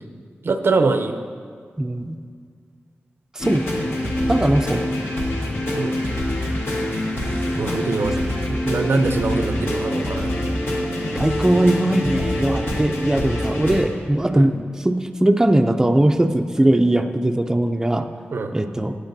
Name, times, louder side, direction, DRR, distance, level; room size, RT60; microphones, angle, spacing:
voice 1, 0.4-1.2 5.7-6.0 7.6-8.2 8.5-10.3 14.3-14.5 18.3-18.5, right 3 dB, 70° right, 7 dB, 0.5 m, -23 dB
voice 2, 1.8-2.2 3.4-3.6 4.3-4.8 7.7-7.8 11.1-14.5 14.8-18.1 18.5-18.9, right 1 dB, 15° right, 6 dB, 0.4 m, -19 dB
sound 1, 3.4-13.9, left 1 dB, 75° left, 1.3 m, -25 dB
14.5 x 9.5 x 2.7 m, 2.1 s
wide cardioid pair, 105°, 4 cm